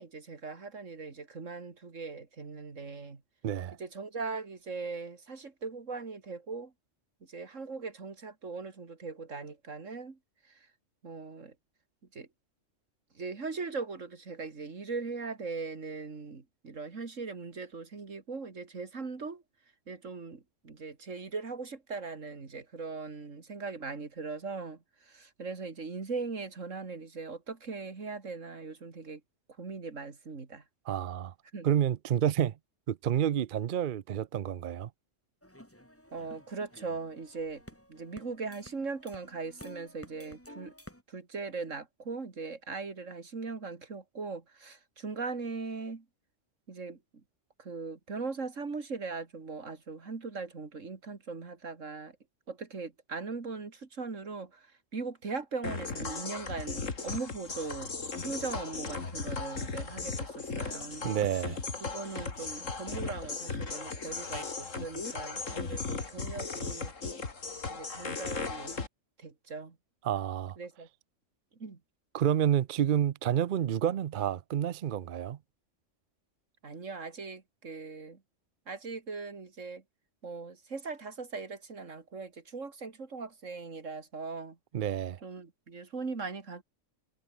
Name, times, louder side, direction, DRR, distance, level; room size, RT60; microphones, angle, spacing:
voice 1, 0.0-3.2 3.8-6.7 7.2-10.2 10.4-10.7 11.0-11.5 12.1-12.3 13.1-19.4 19.9-29.2 29.6-30.6 31.5-31.7 36.1-37.6 37.9-40.7 41.1-46.1 46.7-47.2 47.6-52.2 52.5-61.2 61.8-66.9 67.7-68.8 69.2-69.8 70.6-70.9 71.6-71.8 76.6-78.2 78.7-79.8 80.2-84.6 85.2-86.6, right 4 dB, 80° right, 2.8 m, -40 dB
voice 2, 3.4-3.8 30.9-31.3 31.6-32.5 32.9-34.9 61.0-61.6 70.0-70.6 72.1-75.4 84.7-85.2, right 10 dB, 55° right, 0.6 m, -29 dB
sound 1, 35.4-41.0, equal, 10° left, 4.7 m, -52 dB
sound 2, 55.6-68.9, left 4 dB, 85° left, 3.0 m, -37 dB
omnidirectional pair, 1.3 m